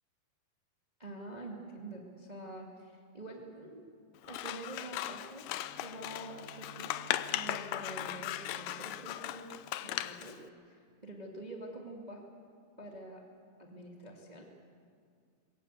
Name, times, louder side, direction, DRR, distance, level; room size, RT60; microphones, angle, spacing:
voice 1, 1.0-3.8 4.3-5.5 5.8-6.9 7.3-9.6 9.8-10.4 10.6-12.2 12.8-13.2 13.6-14.5, right 1 dB, 20° right, 0 dB, 1.0 m, -46 dB
Scissors, 4.2-10.4, left 14 dB, 80° left, 2.0 m, -38 dB
Bowed string instrument, 5.4-10.5, right 3 dB, 60° left, 6.5 m, -56 dB
22.0 x 17.0 x 8.2 m, 2.2 s
omnidirectional pair, 4.3 m